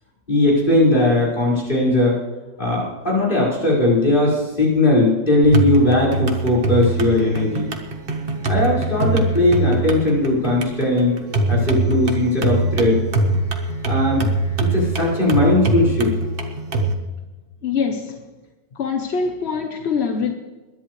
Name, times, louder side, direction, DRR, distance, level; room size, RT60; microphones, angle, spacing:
voice 1, 0.3-2.2 2.6-7.7 8.5-11.1 11.5-13.0 13.8-14.3 14.7-16.1, left 2 dB, 30° left, 5.3 m, -18 dB
sound 1, 5.4-16.9, right 2 dB, 35° right, 1.5 m, -23 dB
voice 2, 11.9-12.2 17.6-18.3 18.7-20.3, left 5 dB, 50° left, 1.0 m, -24 dB
21.5 x 11.0 x 3.2 m
omnidirectional pair, 1.8 m